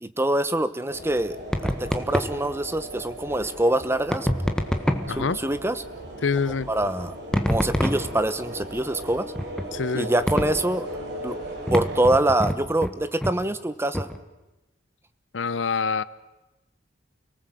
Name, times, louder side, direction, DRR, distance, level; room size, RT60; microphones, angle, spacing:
voice 1, 0.0-1.4 1.6-4.3 5.2-5.8 6.7-7.1 7.5-9.3 9.9-10.9 11.2-11.4 11.7-14.1, right 1 dB, 15° right, 11 dB, 0.9 m, -24 dB
sound 1, 0.9-12.2, right 1 dB, 60° right, 4.5 m, -37 dB
sound 2, 1.5-2.4 4.1-5.2 7.3-8.4 9.4-9.7 10.3-10.7 11.7-13.0 13.2-13.4 13.9-14.2, equal, 5° left, 1.5 m, -26 dB
voice 2, 5.1-5.4 6.2-6.7 9.7-10.1 15.3-16.0, left 5 dB, 75° left, 17 dB, 0.8 m, -25 dB
29.5 x 19.0 x 7.7 m, 1.0 s
head